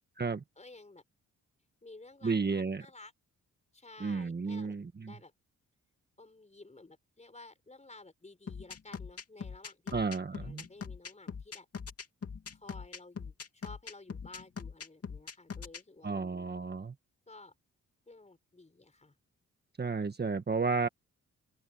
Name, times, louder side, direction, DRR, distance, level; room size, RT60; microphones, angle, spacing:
voice 1, 0.6-1.0 1.8-3.1 3.7-4.8 5.1-5.3 6.2-10.0 10.3-11.7 12.5-16.5 17.3-17.5 18.1-19.2, left 2 dB, 20° left, 5.6 m, -53 dB
voice 2, 2.2-2.8 4.0-5.1 9.9-10.6 16.0-16.9 19.8-20.9, right 4 dB, 30° right, 1.5 m, -32 dB
sound 1, 8.5-15.8, left 6 dB, 50° left, 2.6 m, -42 dB
open air
cardioid pair, 75°, 31 cm